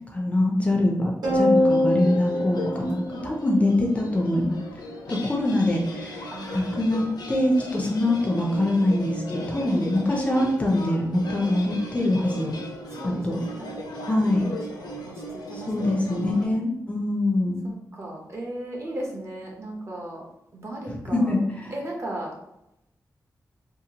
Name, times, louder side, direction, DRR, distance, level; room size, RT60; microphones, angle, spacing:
voice 1, 0.1-4.6 5.1-12.5 13.0-13.4 14.1-14.5 15.5-17.6 21.1-21.7, left 1 dB, 20° left, 0 dB, 0.4 m, -24 dB
sound 1, 1.2-3.8, left 1 dB, 90° right, 1.1 m, -23 dB
sound 2, 1.5-16.5, equal, 75° left, 0.5 m, -37 dB
voice 2, 6.3-6.8 12.9-13.9 14.4-15.7 16.0-16.2 17.6-20.2 20.5-21.4 21.7-22.3, right 1 dB, 40° right, -1 dB, 0.6 m, -37 dB
2.8 x 2.3 x 2.7 m, 0.83 s
wide cardioid pair, 175°, 7 cm